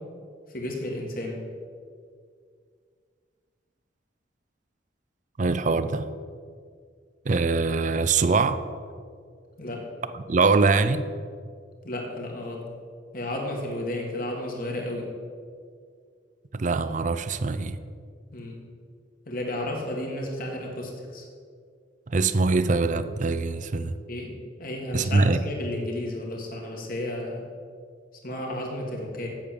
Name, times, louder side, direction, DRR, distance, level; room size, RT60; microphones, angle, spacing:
voice 1, 0.5-1.4 9.6-9.8 11.8-12.7 13.1-15.1 18.3-18.6 19.3-21.2 24.1-27.4 28.2-29.3, left 1 dB, 50° left, 0 dB, 2.1 m, -32 dB
voice 2, 5.4-6.1 7.3-8.6 10.1-11.0 16.5-17.8 22.1-23.9 24.9-25.4, right 3 dB, 45° right, 13 dB, 0.5 m, -23 dB
8.5 x 7.6 x 6.9 m, 2.1 s
head